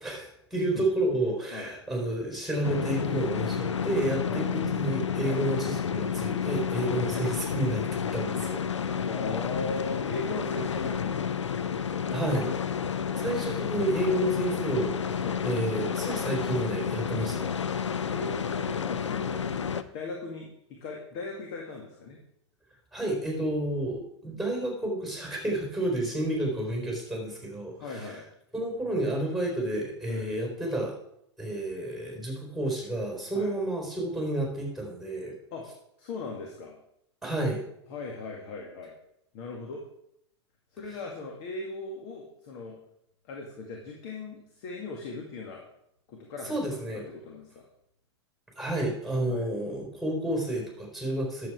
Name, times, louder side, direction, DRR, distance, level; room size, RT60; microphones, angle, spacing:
voice 1, 0.0-8.6 12.1-12.5 13.0-17.5 22.9-27.7 28.0-28.1 28.5-31.0 31.4-35.4 37.2-37.6 46.5-47.1 48.6-51.5, right 1 dB, ahead, 1 dB, 4.1 m, -30 dB
sound 1, 2.6-19.8, left 7 dB, 90° left, 0.6 m, -30 dB
voice 2, 9.1-12.2 15.2-15.4 17.1-17.3 18.1-19.4 19.9-22.2 27.7-28.3 30.1-30.3 33.3-33.5 35.5-35.7 36.0-36.7 37.9-39.0 39.3-39.8 40.7-42.8 43.2-45.6 46.1-47.7 49.3-49.4, left 3 dB, 55° left, 0 dB, 2.0 m, -38 dB
11.0 x 7.7 x 4.8 m, 0.74 s
hypercardioid pair, 100°, 15 cm